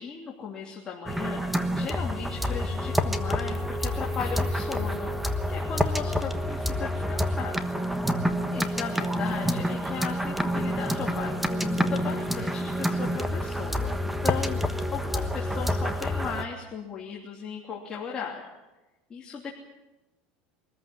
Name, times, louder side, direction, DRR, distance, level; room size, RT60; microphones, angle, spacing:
voice 1, 0.0-8.0 8.3-18.4 19.1-19.6, left 6 dB, 20° left, -3 dB, 3.1 m, -37 dB
sound 1, 1.1-16.4, equal, 5° right, 1.2 m, -28 dB
24.0 x 14.0 x 9.7 m, 1.1 s
supercardioid pair, 140°, 4 cm